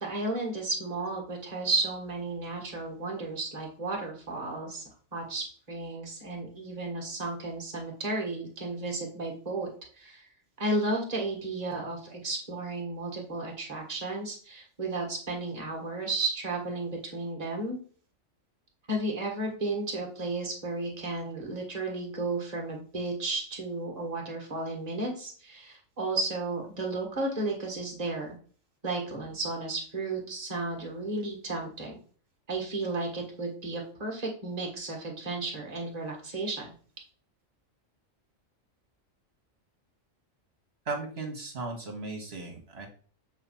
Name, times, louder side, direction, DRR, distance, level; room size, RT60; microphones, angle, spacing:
voice 1, 0.0-4.8 5.1-9.7 10.0-10.3 10.6-17.8 18.9-28.4 28.8-32.0 32.5-36.7, right 2 dB, 30° right, 0 dB, 1.8 m, -33 dB
voice 2, 40.9-42.9, right 3 dB, 50° right, 3 dB, 1.8 m, -36 dB
7.6 x 3.3 x 5.7 m, 0.44 s
omnidirectional pair, 1.4 m